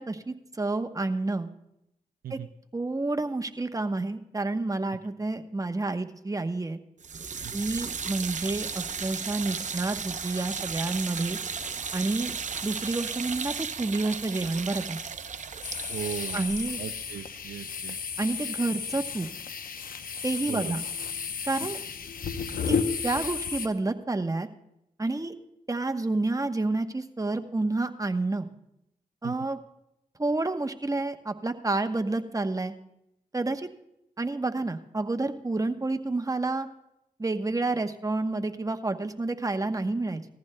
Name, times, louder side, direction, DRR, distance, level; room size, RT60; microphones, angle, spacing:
voice 1, 0.0-1.5 2.3-2.4 2.7-6.8 7.5-11.4 11.9-12.3 12.6-15.0 16.3-16.8 18.2-19.3 20.2-20.8 21.5-21.8 22.7-22.8 23.0-24.5 25.0-25.3 25.7-28.5 29.2-29.6 30.2-32.7 33.3-33.7 34.2-36.7 37.2-40.2, right 2 dB, 25° right, 6 dB, 1.0 m, -29 dB
sound 1, 7.0-18.1, right 6 dB, 55° right, 0.7 m, -35 dB
sound 2, 15.6-23.7, left 6 dB, 75° left, 0.8 m, -33 dB
voice 2, 15.9-16.5 16.8-18.0 20.5-20.7 29.2-29.5, right 10 dB, 85° right, 12 dB, 0.4 m, -37 dB
18.5 x 14.5 x 2.2 m, 0.83 s
cardioid pair, 40°, 15 cm